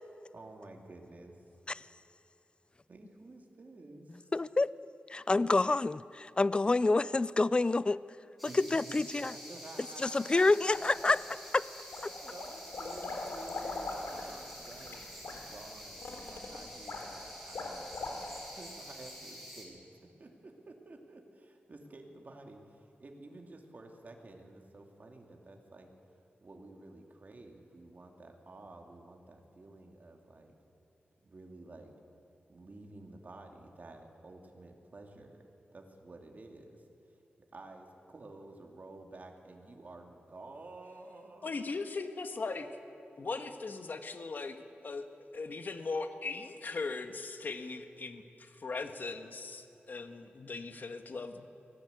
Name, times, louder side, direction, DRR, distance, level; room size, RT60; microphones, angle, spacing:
voice 1, 0.3-1.4 2.9-4.3 8.4-10.9 12.2-18.0 18.3-19.8 20.2-25.9 26.4-30.6 31.2-32.0 32.5-36.8 37.5-41.6, right 2 dB, 45° right, 2 dB, 2.5 m, -51 dB
voice 2, 4.3-4.7 5.1-8.0 8.5-9.3 10.0-11.2 11.5-11.6, left 3 dB, 25° left, 18 dB, 0.4 m, -27 dB
sound 1, 8.4-19.6, equal, ahead, 5.6 m, -48 dB
sound 2, 10.7-11.5 11.9-18.6, left 3 dB, 85° left, 3.5 m, -41 dB
voice 3, 41.4-42.7 43.2-44.6 44.8-51.5, left 3 dB, 55° left, 7 dB, 1.6 m, -39 dB
24.0 x 17.0 x 8.2 m, 3.0 s
wide cardioid pair, 120°, 4 cm